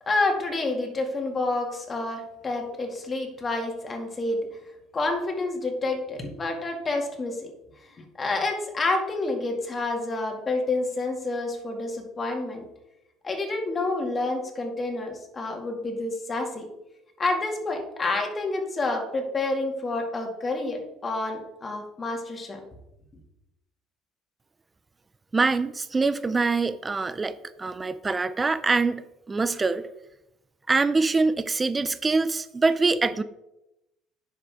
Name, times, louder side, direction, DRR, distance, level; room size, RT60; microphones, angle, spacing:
voice 1, 0.1-4.4 4.9-7.5 7.8-7.9 8.2-12.6 13.2-16.7 17.2-22.6, left 2 dB, 25° left, 2 dB, 2.2 m, -28 dB
voice 2, 25.3-29.9 30.7-33.2, right 3 dB, 20° right, 13 dB, 0.4 m, -24 dB
9.9 x 6.9 x 3.6 m, 0.89 s
cardioid pair, 115°, 0 cm